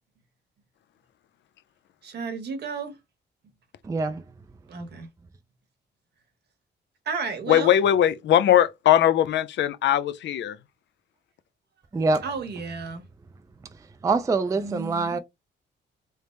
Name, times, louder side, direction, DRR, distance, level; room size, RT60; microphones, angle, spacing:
voice 1, 2.0-3.0 4.7-5.1 7.0-7.7 12.2-13.0 14.5-15.2, right 5 dB, 60° right, 1.1 m, -33 dB
voice 2, 3.8-4.2 11.9-12.2 14.0-15.2, right 3 dB, 15° right, 0.3 m, -24 dB
voice 3, 7.5-10.6, left 11 dB, 70° left, 0.4 m, -20 dB
3.4 x 2.0 x 4.2 m
cardioid pair, 110°, 19 cm